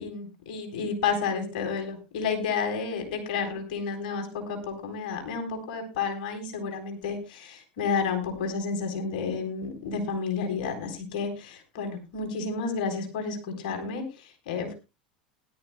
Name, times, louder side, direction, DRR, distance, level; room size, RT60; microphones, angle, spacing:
voice 1, 0.0-14.7, left 5 dB, 70° left, 4 dB, 4.1 m, -31 dB
19.5 x 12.0 x 2.2 m, 0.28 s
hypercardioid pair, 90°, 5 cm